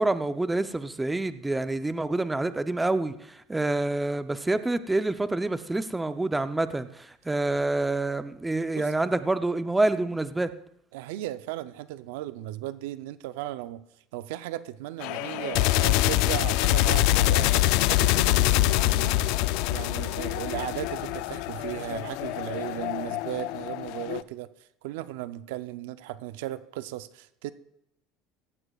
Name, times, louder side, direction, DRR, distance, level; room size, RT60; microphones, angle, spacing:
voice 1, 0.0-10.5, right 2 dB, 10° right, 11 dB, 0.6 m, -27 dB
voice 2, 10.9-13.8 14.1-17.5 17.9-19.3 19.7-24.5 24.8-27.5, right 14 dB, 85° right, 13 dB, 0.5 m, -36 dB
sound 1, 15.0-24.2, left 16 dB, 70° left, 0.4 m, -25 dB
16.5 x 14.0 x 2.4 m, 0.77 s
supercardioid pair, 115°, 0 cm